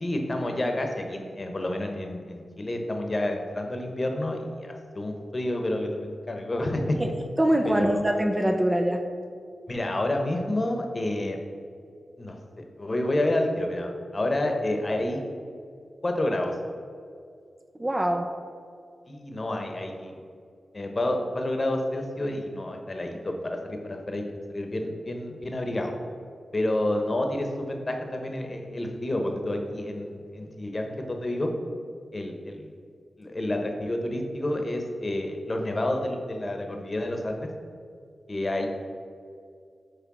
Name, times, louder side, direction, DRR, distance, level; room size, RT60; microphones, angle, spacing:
voice 1, 0.0-7.1 7.7-8.0 9.7-11.4 12.2-15.2 16.0-16.6 19.1-20.2 20.7-24.2 24.5-25.9 26.5-31.5 32.1-32.7 33.2-37.5 38.3-38.7, left 1 dB, 35° left, 3 dB, 1.0 m, -29 dB
voice 2, 7.4-9.0 17.8-18.3, right 1 dB, 15° right, 5 dB, 0.5 m, -23 dB
8.4 x 3.3 x 6.1 m, 2.3 s
wide cardioid pair, 80°, 0 cm